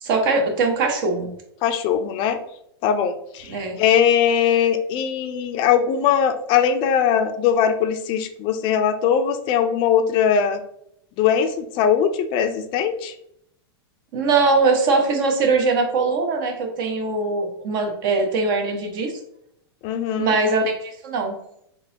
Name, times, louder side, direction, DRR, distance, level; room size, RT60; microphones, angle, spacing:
voice 1, 0.0-1.3 3.5-3.8 14.1-19.1 20.2-21.3, right 3 dB, 55° right, 4 dB, 0.9 m, -21 dB
voice 2, 1.6-2.4 2.8-10.6 11.2-13.1 19.8-20.3, left 8 dB, 40° left, 8 dB, 0.4 m, -20 dB
3.8 x 2.8 x 2.8 m, 0.74 s
hypercardioid pair, 105°, 13 cm